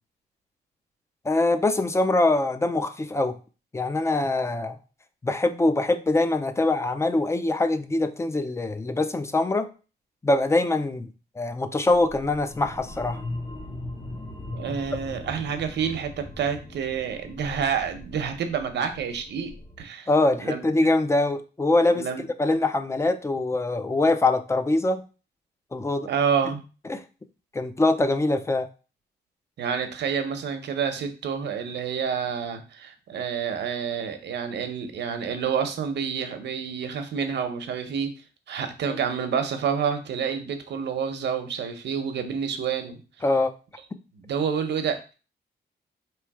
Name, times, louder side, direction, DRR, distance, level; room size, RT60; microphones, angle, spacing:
voice 1, 1.2-3.4 3.7-4.8 5.2-9.7 10.2-13.2 20.1-22.1 22.4-25.0 25.7-26.1 26.9-27.0 27.5-28.7 38.8-39.0 43.2-43.5, left 2 dB, 15° left, 9 dB, 0.4 m, -23 dB
sound 1, 11.9-19.8, left 2 dB, 30° left, 0.8 m, -39 dB
voice 2, 14.5-20.1 20.4-20.9 21.9-22.2 26.1-26.6 29.6-38.1 38.5-43.0 44.1-45.1, right 7 dB, 90° right, 7 dB, 0.8 m, -28 dB
3.3 x 3.1 x 4.7 m, 0.34 s
wide cardioid pair, 130°, 18 cm